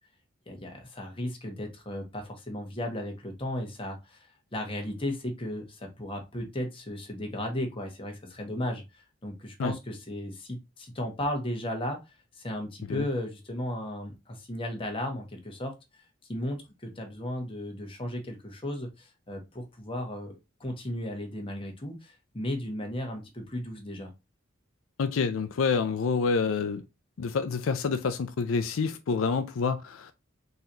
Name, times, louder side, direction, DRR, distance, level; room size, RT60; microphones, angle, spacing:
voice 1, 0.5-12.0 12.4-15.7 16.3-20.3 20.6-24.1, left 1 dB, 25° left, 1.2 m, -35 dB
voice 2, 25.0-26.8 27.2-30.3, left 5 dB, 80° left, 0.4 m, -28 dB
4.0 x 2.9 x 3.8 m
head